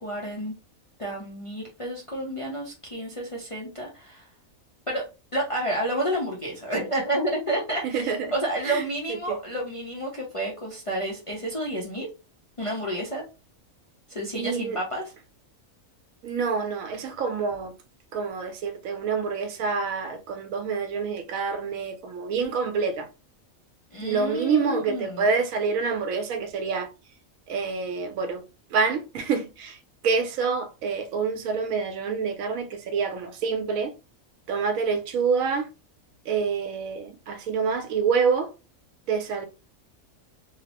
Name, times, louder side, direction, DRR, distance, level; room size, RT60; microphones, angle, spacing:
voice 1, 0.0-0.5 1.0-4.3 4.9-5.1 5.3-12.1 12.6-13.2 14.1-15.0 23.9-25.2, right 1 dB, 45° left, 0.4 m, -30 dB
voice 2, 7.8-8.3 8.6-8.8 9.1-9.4 14.3-14.8 16.2-17.7 18.1-23.1 24.0-26.9 27.5-28.4 28.7-33.9 34.5-35.7 36.3-38.5 39.1-39.5, right 5 dB, 75° right, 1.0 m, -27 dB
2.8 x 2.0 x 2.8 m
omnidirectional pair, 1.4 m